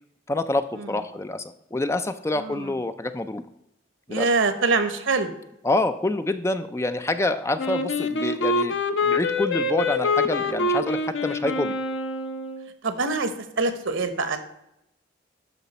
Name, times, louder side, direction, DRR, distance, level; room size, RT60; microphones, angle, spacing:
voice 1, 0.3-3.4 4.1-4.3 5.6-11.8, left 2 dB, 15° left, 10 dB, 0.3 m, -27 dB
voice 2, 2.4-2.7 4.1-5.3 12.8-14.4, right 3 dB, 85° right, 9 dB, 1.1 m, -24 dB
Wind instrument woodwind instrument, 7.6-12.7, left 2 dB, 70° left, 0.7 m, -25 dB
12.5 x 5.0 x 4.1 m, 0.83 s
head